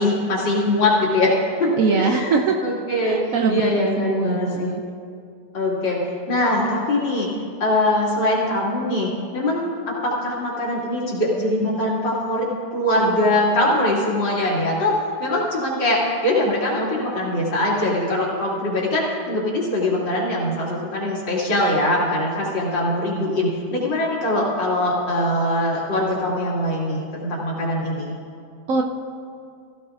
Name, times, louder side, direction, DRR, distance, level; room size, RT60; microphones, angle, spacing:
voice 1, 0.0-1.7 2.0-2.4 2.6-3.2 3.5-4.7 5.5-6.0 6.3-7.3 7.6-9.7 10.0-14.9 15.2-28.1, left 1 dB, 85° left, -5 dB, 3.0 m, -22 dB
voice 2, 1.8-2.6 3.0-4.8 28.7-28.8, right 5 dB, 65° right, 2 dB, 0.9 m, -22 dB
16.0 x 15.0 x 2.5 m, 2.3 s
omnidirectional pair, 1.9 m